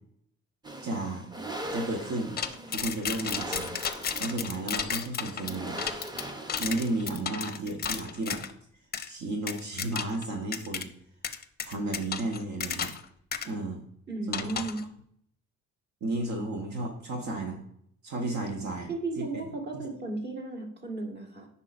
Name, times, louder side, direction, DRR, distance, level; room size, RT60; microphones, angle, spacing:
sound 1, 0.6-7.4, right 1 dB, 15° right, 0.7 m, -40 dB
voice 1, 0.8-1.3 1.7-2.4 2.7-3.8 4.2-5.8 6.6-8.4 9.0-10.9 11.7-12.9 13.4-13.8 14.3-14.7 16.0-17.6 18.0-18.9 19.2-19.4 19.7-19.8, right 2 dB, 70° right, 2 dB, 1.0 m, -33 dB
sound 2, 2.4-8.5 8.9-9.1 9.5-10.2 10.5-10.8 11.2-13.0 13.3-13.5 14.3-14.8, left 7 dB, 30° left, 0.5 m, -33 dB
voice 2, 14.1-14.8 18.9-21.5, right 3 dB, 35° right, 1 dB, 1.6 m, -35 dB
8.2 x 5.6 x 2.5 m, 0.69 s
cardioid pair, 90°, 30 cm